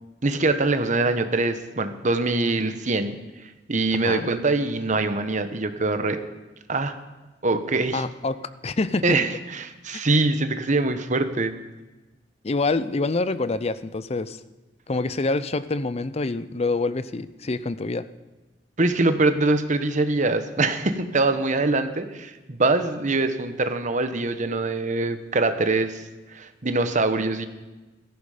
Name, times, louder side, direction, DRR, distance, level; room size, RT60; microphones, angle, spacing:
voice 1, 0.2-3.2 3.7-6.2 6.7-7.0 7.4-8.0 9.0-11.5 18.8-26.0 26.3-27.5, right 2 dB, 45° right, 9 dB, 1.1 m, -23 dB
voice 2, 3.9-4.3 7.9-8.4 8.6-9.2 12.4-14.4 14.9-18.1, left 3 dB, 35° left, 14 dB, 0.6 m, -26 dB
16.5 x 14.0 x 5.0 m, 1.1 s
head